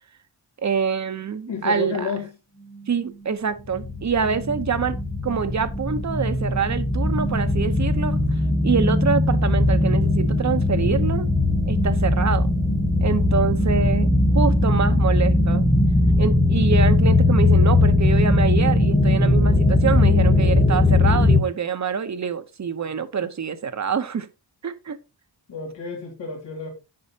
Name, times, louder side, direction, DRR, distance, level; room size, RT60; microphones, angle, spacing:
voice 1, 0.6-2.1 2.9-5.0 5.2-8.2 8.6-11.3 11.7-12.5 13.0-15.6 16.2-24.3 24.6-25.0, right 6 dB, 40° right, 0.8 m, -25 dB
voice 2, 1.5-2.3 25.5-26.7, left 5 dB, 85° left, 2.4 m, -30 dB
sound 1, 3.7-21.4, left 2 dB, 15° left, 1.2 m, -19 dB
8.6 x 5.5 x 2.8 m
wide cardioid pair, 100°, 42 cm